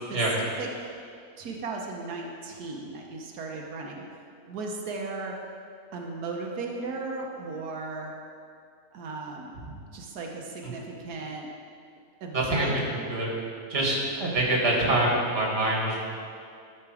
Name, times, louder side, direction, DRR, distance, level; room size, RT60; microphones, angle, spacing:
voice 1, 0.6-0.9 1.4-4.0 4.5-5.4 5.9-8.1 8.9-9.6 9.9-11.5 12.2-12.8, right 3 dB, 90° right, 0 dB, 1.5 m, -36 dB
voice 2, 12.3-12.7 13.1-13.3 13.7-16.0, right 1 dB, 40° right, -3 dB, 2.0 m, -25 dB
13.0 x 5.9 x 4.8 m, 2.4 s
omnidirectional pair, 1.6 m